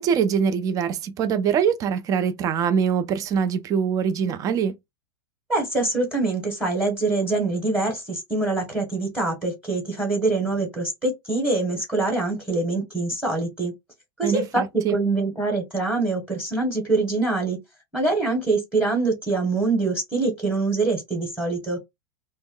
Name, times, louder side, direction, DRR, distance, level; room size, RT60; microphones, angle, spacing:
voice 1, 0.0-4.8 14.2-15.0, right 7 dB, 25° right, 0.4 m, -23 dB
voice 2, 5.5-13.7 14.2-14.6 14.9-17.6 17.9-21.8, right 3 dB, 5° right, 1.1 m, -24 dB
2.2 x 2.0 x 3.6 m
supercardioid pair, 130°, 13 cm